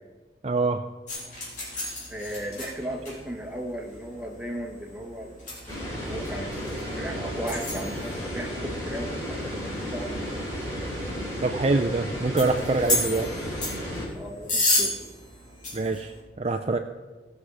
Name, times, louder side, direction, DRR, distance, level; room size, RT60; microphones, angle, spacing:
voice 1, 0.4-0.8 11.4-13.3 15.7-16.8, right 3 dB, 35° right, 6 dB, 0.5 m, -25 dB
sound 1, 1.1-16.2, left 1 dB, 45° left, 3.7 m, -34 dB
voice 2, 2.1-5.3 5.9-9.5 9.8-10.1 14.1-15.1, equal, 5° right, -1 dB, 1.4 m, -36 dB
sound 2, 5.7-14.1, equal, 15° left, 3.4 m, -33 dB
17.5 x 6.1 x 4.9 m, 1.3 s
head